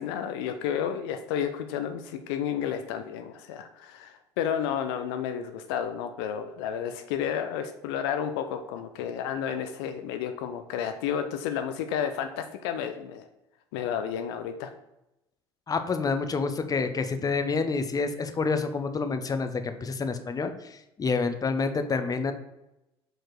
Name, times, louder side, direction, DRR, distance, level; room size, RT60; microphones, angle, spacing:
voice 1, 0.0-13.2 13.7-14.7, left 8 dB, 70° left, 7 dB, 0.5 m, -31 dB
voice 2, 15.7-22.3, left 4 dB, 25° left, 8 dB, 0.7 m, -28 dB
4.8 x 4.5 x 4.5 m, 0.92 s
hypercardioid pair, 60°, 14 cm